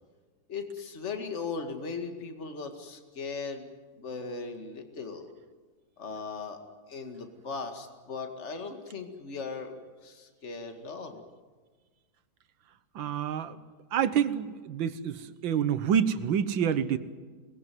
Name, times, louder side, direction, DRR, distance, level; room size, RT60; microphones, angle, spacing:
voice 1, 0.5-5.3 6.0-6.6 6.9-11.3, left 4 dB, 35° left, 6 dB, 2.3 m, -38 dB
voice 2, 13.0-13.6 13.9-17.0, right 8 dB, 75° right, 13 dB, 1.8 m, -27 dB
23.0 x 20.0 x 9.3 m, 1.4 s
omnidirectional pair, 2.1 m